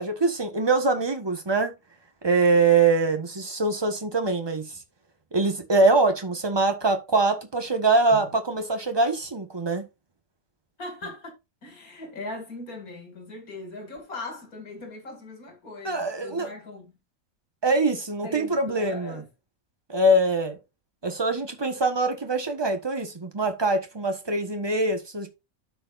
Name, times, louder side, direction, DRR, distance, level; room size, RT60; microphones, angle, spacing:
voice 1, 0.0-1.7 2.2-4.8 5.3-9.8 15.8-16.5 17.6-19.2 19.9-20.6 21.0-25.3, right 3 dB, 20° right, 1.3 m, -23 dB
voice 2, 10.8-11.3 11.6-16.9 18.2-19.3, left 2 dB, 90° left, 2.9 m, -39 dB
13.0 x 4.9 x 2.5 m
omnidirectional pair, 1.5 m